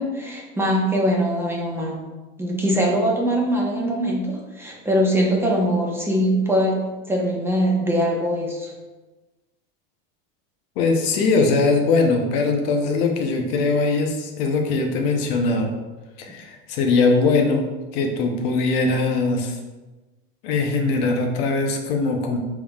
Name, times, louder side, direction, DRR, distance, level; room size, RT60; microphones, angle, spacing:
voice 1, 0.0-2.0 2.4-6.8 7.1-8.7, equal, 5° right, -2 dB, 0.9 m, -22 dB
voice 2, 10.8-15.7 16.2-17.6 17.9-19.6 20.4-22.4, left 3 dB, 70° left, 2 dB, 0.9 m, -21 dB
5.9 x 3.7 x 2.4 m, 1.2 s
supercardioid pair, 110°, 31 cm